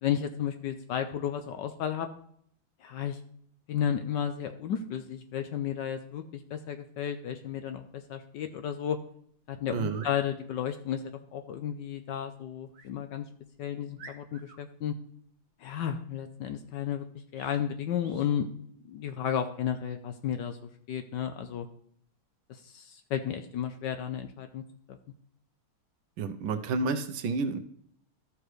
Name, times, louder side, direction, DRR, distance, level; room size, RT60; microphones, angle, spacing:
voice 1, 0.0-2.1 2.8-3.2 3.7-9.0 9.5-11.0 11.3-13.2 13.6-14.9 15.6-17.0 17.3-18.5 18.9-20.6 20.9-21.7 22.5-24.6 24.9-25.0, left 9 dB, 70° left, 7 dB, 1.1 m, -33 dB
voice 2, 9.7-10.1 26.2-27.6, right 4 dB, 75° right, 8 dB, 1.4 m, -30 dB
sound 1, 9.8-10.2 12.7-12.9 13.5-13.6 14.0-14.6 17.3-17.6 18.0-18.3, right 4 dB, 55° right, 1.3 m, -50 dB
13.5 x 5.9 x 3.2 m, 0.64 s
omnidirectional pair, 2.3 m